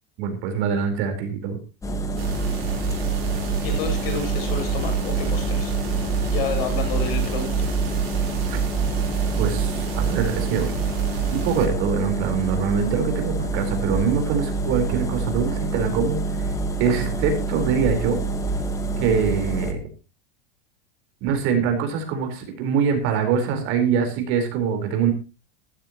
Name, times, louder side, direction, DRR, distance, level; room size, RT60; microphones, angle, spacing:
voice 1, 0.2-1.6 8.5-8.6 9.4-10.7 11.3-16.5 16.8-18.2 19.0-19.8 21.2-25.1, right 6 dB, 45° right, 5 dB, 4.4 m, -24 dB
sound 1, 1.8-19.7, right 3 dB, 10° left, 1.7 m, -26 dB
sound 2, 2.2-11.7, right 10 dB, 85° right, 4.0 m, -29 dB
voice 2, 3.6-5.7 6.3-7.7, left 6 dB, 75° left, 4 dB, 8.0 m, -30 dB
15.5 x 14.5 x 3.0 m, 0.30 s
supercardioid pair, 160°, 30 cm